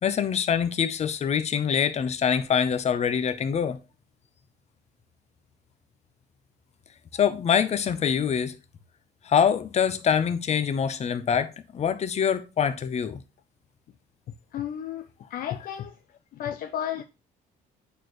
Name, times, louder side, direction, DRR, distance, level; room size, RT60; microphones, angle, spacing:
voice 1, 0.0-3.8 7.1-8.6 9.2-13.2, left 7 dB, 40° left, 0.9 m, -24 dB
voice 2, 14.5-16.0 16.3-17.0, left 10 dB, 60° left, 0.6 m, -33 dB
8.9 x 4.4 x 3.1 m
cardioid pair, 110°, 17 cm